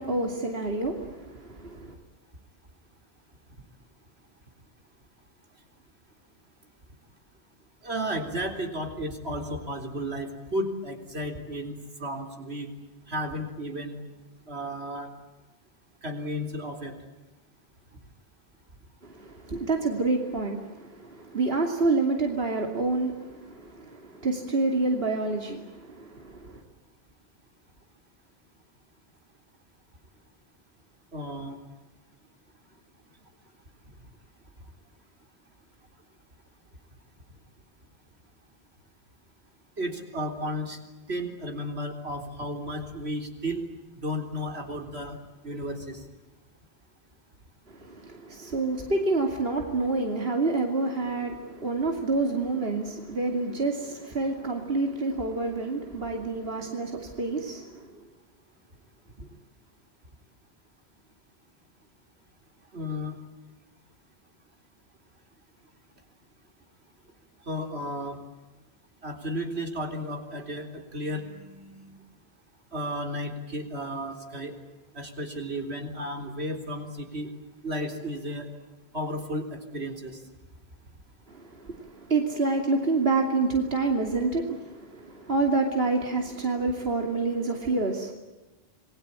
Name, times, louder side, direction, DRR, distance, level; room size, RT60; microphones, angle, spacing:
voice 1, 0.0-1.9 19.0-26.6 47.7-58.0 59.2-59.3 81.3-88.1, right 3 dB, 70° right, 3 dB, 3.0 m, -28 dB
voice 2, 7.8-12.7 13.1-14.0 14.5-15.1 16.0-17.0 31.1-31.6 39.8-40.8 41.1-43.6 44.0-45.2 45.4-46.1 62.7-63.2 67.5-68.2 69.0-71.9 72.7-74.5 74.9-77.3 77.6-78.5 78.9-80.2, equal, 90° right, 4 dB, 4.0 m, -33 dB
28.0 x 21.5 x 9.0 m, 1.1 s
omnidirectional pair, 1.1 m